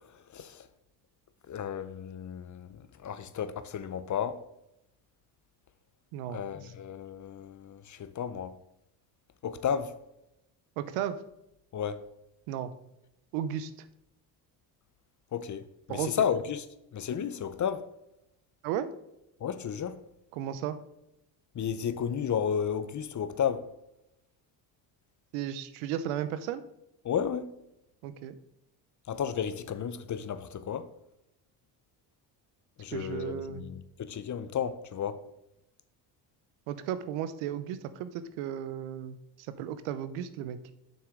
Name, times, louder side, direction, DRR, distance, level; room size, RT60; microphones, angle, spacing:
voice 1, 1.5-4.4 6.3-8.5 9.4-9.9 11.7-12.0 15.3-15.6 15.9-16.6 16.9-17.8 19.4-20.0 21.5-23.6 27.0-27.5 29.1-30.9 32.8-35.2, left 8 dB, 35° left, 0.7 m, -33 dB
voice 2, 6.1-6.7 10.8-11.2 12.5-12.7 13.3-13.7 15.9-16.2 18.6-18.9 20.3-20.8 25.3-26.6 28.0-28.4 32.9-33.6 36.7-40.6, right 10 dB, 85° right, 0.7 m, -34 dB
7.2 x 6.1 x 3.7 m
supercardioid pair, 75°, 49 cm